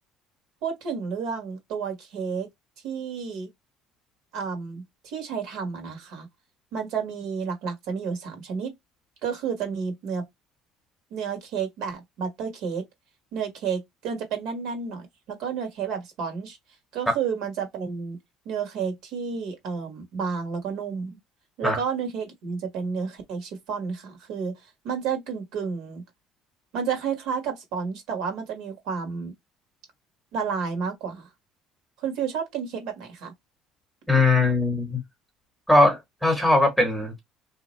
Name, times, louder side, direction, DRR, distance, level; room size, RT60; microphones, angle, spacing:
voice 1, 0.6-2.5 2.8-3.5 4.3-6.3 6.7-8.7 9.2-10.2 11.1-12.8 13.3-16.6 16.9-18.2 18.4-21.2 21.6-24.5 24.8-26.0 26.7-29.3 30.3-31.3 32.0-33.3, right 6 dB, 65° right, 1.5 m, -31 dB
voice 2, 34.1-35.0 35.7-37.2, left 2 dB, ahead, 1.1 m, -20 dB
3.6 x 2.9 x 3.1 m
cardioid pair, 160°, 0 cm